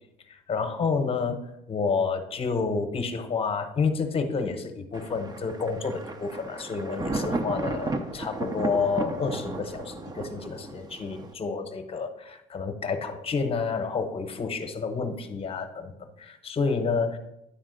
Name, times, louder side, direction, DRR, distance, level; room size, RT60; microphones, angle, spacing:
voice 1, 0.3-1.4 1.7-17.2, left 4 dB, 35° left, 7 dB, 1.0 m, -29 dB
Thunder, 4.9-11.3, right 2 dB, 25° right, 0.7 m, -34 dB
10.0 x 3.6 x 5.1 m, 0.84 s
cardioid pair, 110°, 17 cm